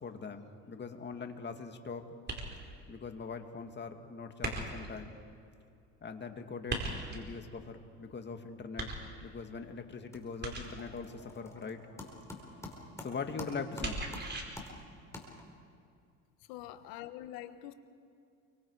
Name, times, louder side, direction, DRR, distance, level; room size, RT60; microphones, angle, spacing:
voice 1, 0.0-2.0 2.9-5.2 6.0-8.9 9.2-14.0, left 5 dB, 30° left, 2.2 m, -42 dB
sound 1, 2.3-2.8 4.4-5.0 6.7-7.3 8.8-9.4 10.4-11.0 13.8-14.4, right 2 dB, 30° right, 4.9 m, -38 dB
sound 2, 9.3-9.6 9.9-15.8, left 2 dB, 10° left, 4.8 m, -48 dB
voice 2, 16.5-17.7, left 13 dB, 85° left, 1.4 m, -44 dB
29.5 x 24.0 x 4.9 m
supercardioid pair, 100°, 35 cm